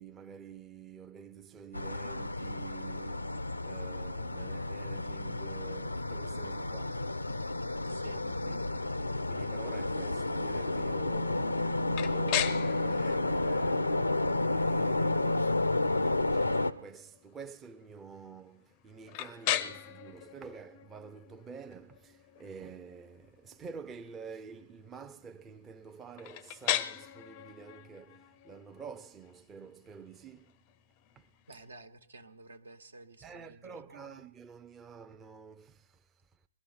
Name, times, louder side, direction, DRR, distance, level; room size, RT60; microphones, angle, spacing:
voice 1, 0.0-7.1 7.9-14.0 14.4-30.6 31.2-31.3 33.2-36.1, right 6 dB, 15° right, 0.5 m, -49 dB
sound 1, 1.7-16.7, left 2 dB, 85° left, 0.6 m, -31 dB
voice 2, 7.9-8.2 31.5-34.2, right 2 dB, 75° right, 1.3 m, -52 dB
sound 2, 11.9-31.7, left 13 dB, 30° left, 0.5 m, -40 dB
21.5 x 13.0 x 4.4 m
figure-of-eight pair, 125°, 0 cm